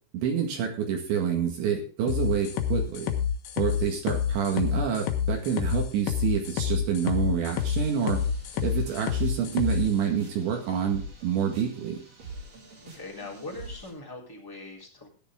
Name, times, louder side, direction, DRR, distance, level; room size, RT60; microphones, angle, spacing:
voice 1, 0.1-3.1 3.6-8.2 8.6-12.0, right 7 dB, 70° right, 1 dB, 4.2 m, -27 dB
sound 1, 2.1-9.9, left 9 dB, 70° left, 3.4 m, -28 dB
sound 2, 7.6-13.9, right 2 dB, 35° right, 3.2 m, -45 dB
voice 2, 12.8-15.1, left 2 dB, 5° left, -2 dB, 2.8 m, -41 dB
16.0 x 10.5 x 3.7 m, 0.37 s
omnidirectional pair, 5.5 m